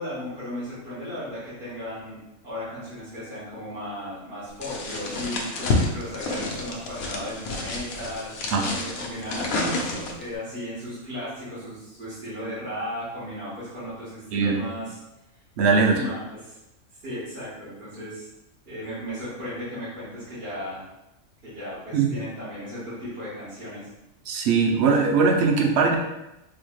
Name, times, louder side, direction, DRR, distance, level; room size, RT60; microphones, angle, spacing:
voice 1, 0.0-2.2 2.4-8.3 8.7-9.9 10.2-15.0 15.9-16.6 17.0-18.3 18.6-20.8 21.4-23.8, equal, 45° right, -12 dB, 1.6 m, -35 dB
sound 1, 4.6-10.3, left 3 dB, 85° left, 1.1 m, -29 dB
voice 2, 15.6-16.0 21.9-22.1 24.3-26.0, right 5 dB, 65° right, 2 dB, 0.7 m, -20 dB
4.2 x 3.1 x 2.3 m, 0.93 s
omnidirectional pair, 1.4 m